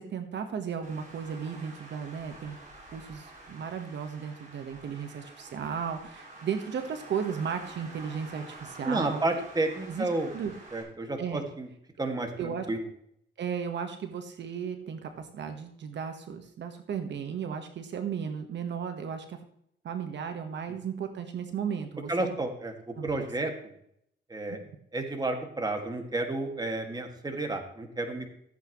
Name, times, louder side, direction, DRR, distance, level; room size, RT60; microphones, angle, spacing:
voice 1, 0.0-2.6 2.9-9.2 9.9-10.1 10.3-10.5 11.2-11.4 12.4-12.7 13.4-19.4 19.8-22.3 23.0-23.3, right 7 dB, 65° right, 7 dB, 1.4 m, -35 dB
Traffic noise roadway noise, 0.8-10.8, right 2 dB, 40° right, 4.9 m, -49 dB
voice 2, 8.8-10.3 10.7-11.7 12.0-12.9 22.1-23.7 24.3-24.6 24.9-28.3, right 2 dB, 20° right, 4 dB, 2.1 m, -31 dB
15.0 x 8.5 x 3.1 m, 0.71 s
cardioid pair, 90°, 19 cm